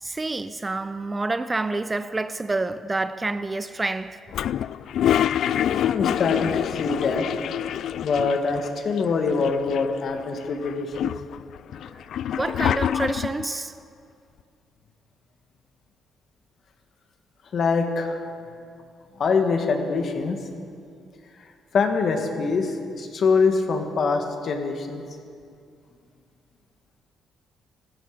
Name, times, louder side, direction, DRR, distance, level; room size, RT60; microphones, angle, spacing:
voice 1, 0.0-4.2 11.9-12.1 12.4-13.7, right 2 dB, 20° right, 0.6 m, -28 dB
Toilet flush, 4.3-8.7 9.0-9.1 9.3-10.1 10.6-13.4, left 10 dB, 70° left, 0.3 m, -26 dB
voice 2, 5.8-7.3 8.0-11.1 12.9-13.2 17.5-18.2 19.2-20.4 21.7-25.0, left 4 dB, 55° left, 2.0 m, -24 dB
18.5 x 15.0 x 5.1 m
cardioid pair, 90°, 0 cm